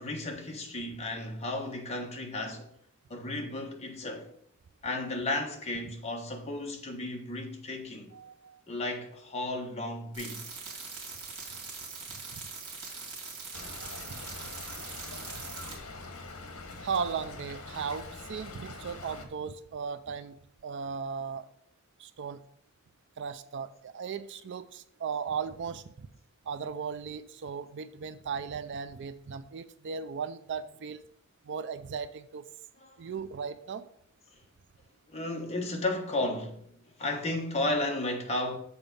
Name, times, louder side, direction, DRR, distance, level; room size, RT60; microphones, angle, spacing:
voice 1, 0.0-2.6 3.1-4.3 4.8-8.1 8.7-10.5 32.8-32.9 35.1-36.6 37.0-38.6, left 2 dB, 30° left, 1.2 m, -33 dB
voice 2, 8.1-8.6 16.8-20.4 20.6-21.5 22.0-22.4 23.2-26.1 26.5-31.0 31.5-32.4 33.0-33.9, right 6 dB, 55° right, 0.4 m, -36 dB
sound 1, 10.1-15.8, right 4 dB, 75° right, 2.3 m, -42 dB
Stream / Trickle dribble, 13.5-19.3, left 3 dB, 75° left, 1.2 m, -44 dB
7.0 x 4.6 x 5.3 m
head